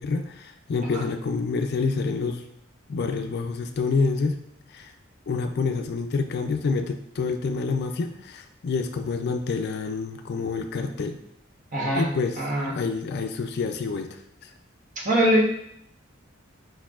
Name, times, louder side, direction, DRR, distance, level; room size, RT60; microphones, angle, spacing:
voice 1, 0.0-2.4 2.9-4.4 4.7-4.9 5.3-11.2 11.9-12.4 12.6-14.2, left 4 dB, 55° left, 7 dB, 0.4 m, -27 dB
voice 2, 11.7-12.1 12.4-12.7 15.0-15.4, right 1 dB, 40° right, -2 dB, 1.1 m, -22 dB
4.7 x 4.3 x 2.4 m, 0.73 s
head